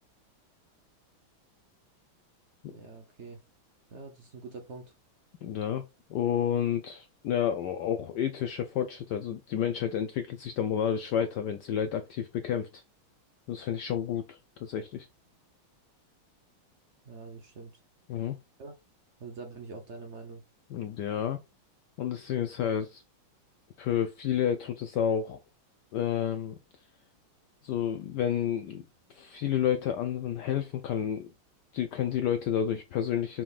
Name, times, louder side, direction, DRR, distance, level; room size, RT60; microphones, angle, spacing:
voice 1, 2.6-3.4 3.9-4.9 17.0-17.8 18.6-18.8 19.2-20.4, right 4 dB, 65° right, 0.7 m, -45 dB
voice 2, 5.4-5.8 6.1-12.8 13.5-15.1 18.1-18.4 20.7-21.4 22.0-23.0 23.8-25.4 25.9-26.6 27.6-28.8 29.1-31.3 31.7-33.4, left 9 dB, 80° left, 0.9 m, -30 dB
6.0 x 3.6 x 2.4 m
omnidirectional pair, 2.3 m